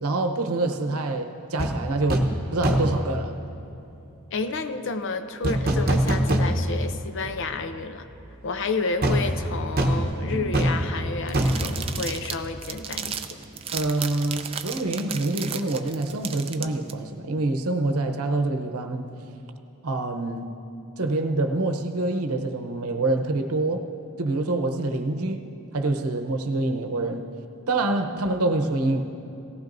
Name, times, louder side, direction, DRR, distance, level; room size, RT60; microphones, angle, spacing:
voice 1, 0.0-3.4 10.3-10.6 13.7-19.1 19.8-20.5 21.0-23.9 24.2-25.4 25.7-27.2 27.7-29.0, right 2 dB, 80° right, 6 dB, 0.8 m, -26 dB
sound 1, 1.6-1.8 2.1-2.4 2.6-3.0 5.4-6.9 7.3-7.4 9.0-12.7 12.9-13.1, right 1 dB, 45° right, 0.9 m, -24 dB
voice 2, 4.3-8.1 8.4-13.2, left 3 dB, 55° left, 9 dB, 0.6 m, -30 dB
sound 2, 11.3-16.9, right 8 dB, 25° right, 0.4 m, -34 dB
18.0 x 15.0 x 2.6 m, 2.8 s
head